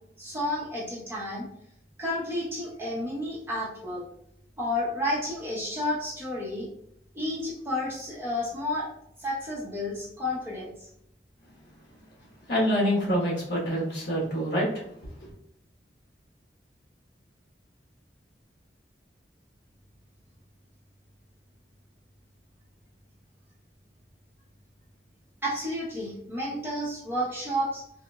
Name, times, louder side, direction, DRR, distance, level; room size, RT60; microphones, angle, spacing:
voice 1, 0.2-1.4 2.0-4.0 4.6-6.7 7.1-8.9 9.2-10.9 25.4-27.8, left 1 dB, 15° right, -6 dB, 0.8 m, -31 dB
voice 2, 12.5-14.7, equal, 70° left, -4 dB, 1.2 m, -26 dB
3.9 x 2.5 x 2.3 m, 0.74 s
head